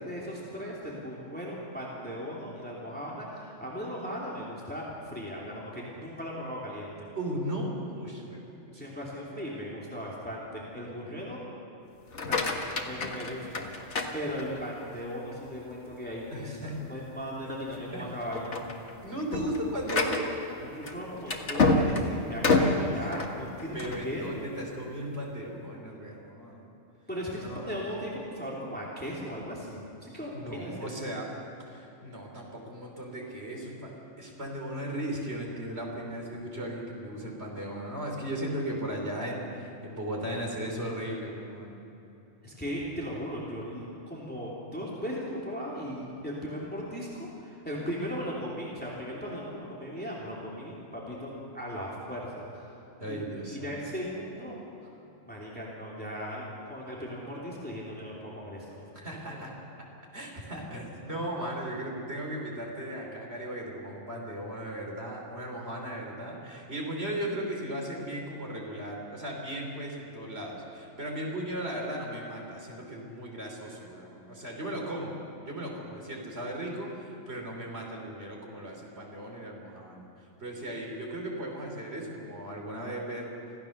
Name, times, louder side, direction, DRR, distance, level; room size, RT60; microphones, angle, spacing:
voice 1, 0.1-6.9 8.7-11.4 12.2-12.4 12.8-13.8 14.1-18.7 20.6-23.7 24.0-24.4 27.1-30.9 42.4-52.7 53.1-53.2 53.5-54.6 55.3-56.4 56.7-58.8, equal, 5° left, -5 dB, 3.1 m, -37 dB
voice 2, 7.2-8.9 11.0-11.1 16.3-16.9 17.9-18.1 19.0-20.3 22.5-23.4 23.7-26.6 27.4-27.8 30.3-31.3 31.6-41.8 53.0-53.7 59.0-59.5 60.1-83.5, right 1 dB, 55° right, -1 dB, 3.8 m, -37 dB
sound 1, 12.0-14.8 15.3-15.8 16.2-16.3 16.7-16.9 17.6-17.9 18.2-24.1, left 3 dB, 65° left, 1.9 m, -29 dB
25.5 x 16.0 x 6.7 m, 2.9 s
omnidirectional pair, 1.3 m